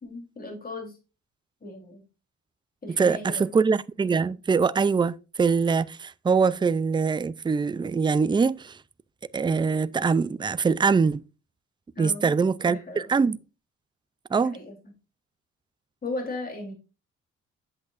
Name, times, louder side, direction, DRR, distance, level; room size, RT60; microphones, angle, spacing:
voice 1, 0.0-0.9 1.6-2.0 2.8-3.5 12.0-12.3 12.7-13.1 14.4-14.7 16.0-16.7, left 2 dB, 30° left, 3.6 m, -36 dB
voice 2, 3.0-8.8 9.3-11.2 12.0-13.4 14.3-14.6, right 5 dB, 15° right, 0.4 m, -23 dB
8.7 x 7.9 x 2.5 m
cardioid pair, 90°, 30 cm